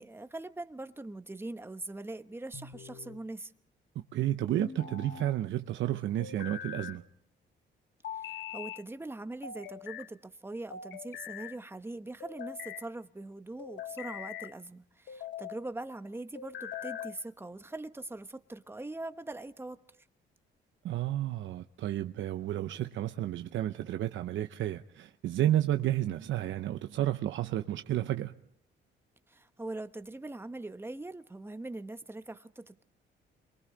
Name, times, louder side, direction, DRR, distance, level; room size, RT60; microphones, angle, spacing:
voice 1, 0.0-3.5 8.1-19.8 29.3-32.8, right 2 dB, 10° right, 0.9 m, -42 dB
sound 1, 2.5-3.2 4.6-5.4 6.2-7.0 8.0-8.8 9.4-10.1 10.7-11.6 12.2-12.9 13.6-14.5 15.1-15.6 16.4-17.2, left 8 dB, 70° left, 1.2 m, -42 dB
voice 2, 4.1-7.0 20.8-28.3, right 12 dB, 70° right, 0.7 m, -31 dB
28.5 x 23.0 x 3.9 m
cardioid pair, 90°, 20 cm